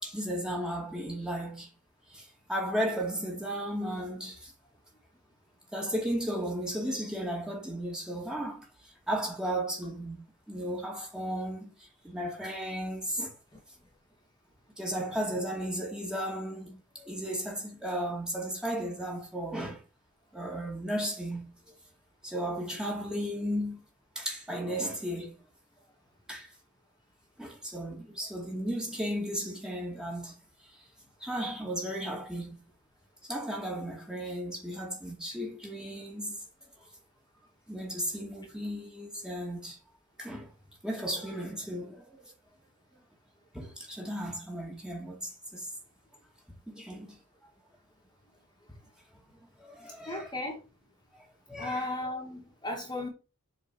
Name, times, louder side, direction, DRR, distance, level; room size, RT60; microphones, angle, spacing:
voice 1, 0.0-1.7 2.5-4.5 5.7-8.6 9.1-10.2 10.5-11.7 12.0-13.3 14.8-19.8 20.3-21.5 22.2-23.8 24.2-25.4 26.3-26.5 27.4-30.3 31.2-32.6 33.3-36.4 37.7-39.8 40.2-40.5 40.8-42.0 43.5-45.6 46.7-47.1 49.6-50.3 51.5-51.9, equal, 5° right, 2.3 m, -34 dB
voice 2, 50.1-50.6 51.6-53.1, left 2 dB, 20° left, 2.1 m, -35 dB
7.5 x 4.6 x 6.3 m
head